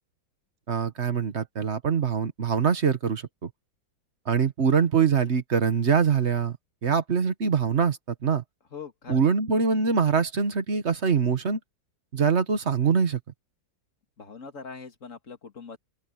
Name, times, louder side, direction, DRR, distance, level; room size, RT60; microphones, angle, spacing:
voice 1, 0.7-3.5 4.3-6.6 6.8-8.4 9.1-11.6 12.1-13.2, right 6 dB, 40° right, 1.3 m, -24 dB
voice 2, 8.7-9.2 14.2-15.8, left 5 dB, 40° left, 2.4 m, -41 dB
open air
omnidirectional pair, 2.1 m